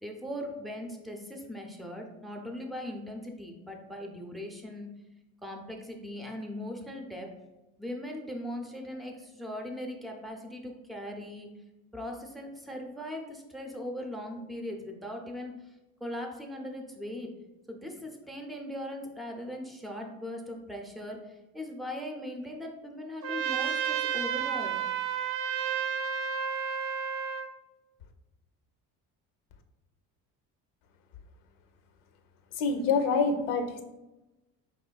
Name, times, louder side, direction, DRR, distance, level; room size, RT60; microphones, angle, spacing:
voice 1, 0.0-4.9 5.4-7.3 7.8-11.5 11.9-15.7 16.0-17.3 17.7-24.8, left 1 dB, ahead, 1 dB, 0.4 m, -39 dB
Trumpet, 23.2-27.5, right 7 dB, 65° right, 0.4 m, -31 dB
voice 2, 32.6-33.8, left 4 dB, 90° left, 6 dB, 0.6 m, -26 dB
5.0 x 3.0 x 2.2 m, 1.0 s
cardioid pair, 135°, 33 cm